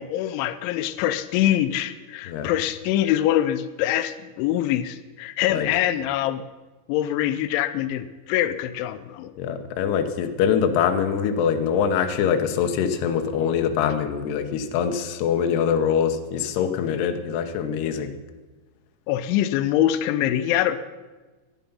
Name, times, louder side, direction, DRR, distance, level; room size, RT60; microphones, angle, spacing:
voice 1, 0.0-6.4 6.9-9.3 19.1-20.8, left 12 dB, 90° left, 11 dB, 3.1 m, -24 dB
voice 2, 9.4-18.1, left 7 dB, 70° left, 6 dB, 2.9 m, -23 dB
16.0 x 11.5 x 5.5 m, 1.2 s
omnidirectional pair, 5.2 m